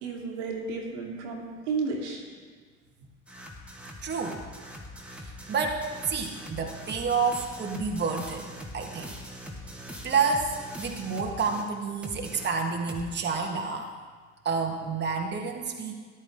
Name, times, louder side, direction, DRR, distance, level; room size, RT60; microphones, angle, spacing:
voice 1, 0.0-2.3, right 4 dB, 70° right, -1 dB, 2.3 m, -32 dB
sound 1, 3.3-11.7 12.0-13.1, equal, 5° right, 1.9 m, -42 dB
voice 2, 4.0-4.5 5.2-8.4 8.7-9.1 10.0-13.9 14.4-15.9, right 5 dB, 30° right, 1 dB, 1.6 m, -29 dB
14.0 x 10.5 x 3.7 m, 1.5 s
hypercardioid pair, 70°, 37 cm